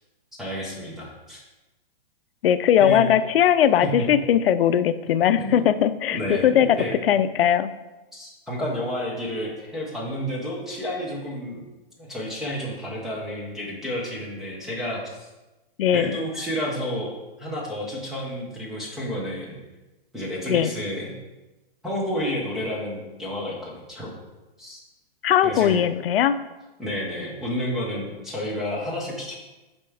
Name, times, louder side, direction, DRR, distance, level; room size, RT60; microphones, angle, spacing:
voice 1, 0.3-1.4 2.8-3.0 3.8-4.1 5.4-5.6 6.1-6.9 8.1-11.6 12.0-15.3 15.9-19.6 20.1-21.1 21.8-24.1 24.6-24.8 25.4-25.8 26.8-29.4, equal, ahead, -5 dB, 0.5 m, -30 dB
voice 2, 2.4-7.7 15.8-16.2 20.5-20.7 25.2-26.4, left 9 dB, 75° left, 12 dB, 0.4 m, -20 dB
6.7 x 4.2 x 3.5 m, 1.1 s
hypercardioid pair, 160°, 29 cm